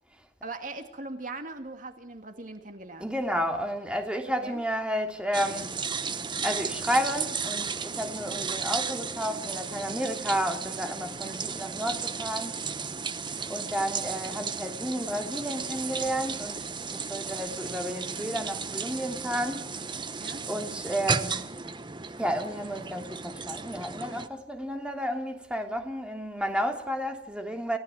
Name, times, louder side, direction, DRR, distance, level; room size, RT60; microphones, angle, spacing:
voice 1, 0.4-3.1 4.4-4.6 11.2-11.4 20.2-20.4, right 3 dB, 50° right, 2.2 m, -40 dB
voice 2, 3.0-5.7 6.4-12.6 13.5-19.7 20.5-21.4 22.2-27.8, equal, 5° right, 3.0 m, -31 dB
sound 1, 5.3-24.3, right 5 dB, 25° right, 1.1 m, -34 dB
29.5 x 17.0 x 9.2 m
head